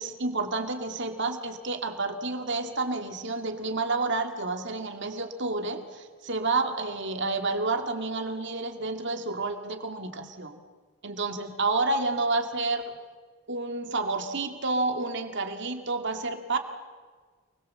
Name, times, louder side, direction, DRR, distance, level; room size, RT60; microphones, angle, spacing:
voice 1, 0.0-10.6 11.0-12.8 13.5-16.6, right 3 dB, 60° right, 6 dB, 2.3 m, -30 dB
29.0 x 21.0 x 7.6 m, 1.5 s
head